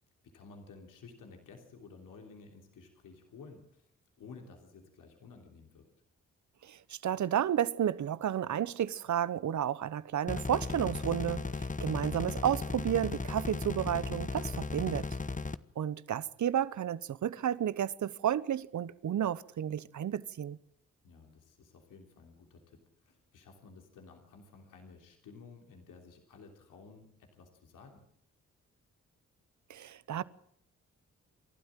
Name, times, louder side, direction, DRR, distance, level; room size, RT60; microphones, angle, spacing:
voice 1, 0.2-3.9 4.2-5.9 11.9-12.0 21.0-28.0, left 4 dB, 80° left, 3.3 m, -54 dB
voice 2, 6.6-15.1 15.8-20.6 29.7-30.2, right 10 dB, 65° right, 1.0 m, -32 dB
sound 1, 10.3-15.6, left 3 dB, 25° left, 1.1 m, -36 dB
28.0 x 12.5 x 7.5 m
supercardioid pair, 45°, 32 cm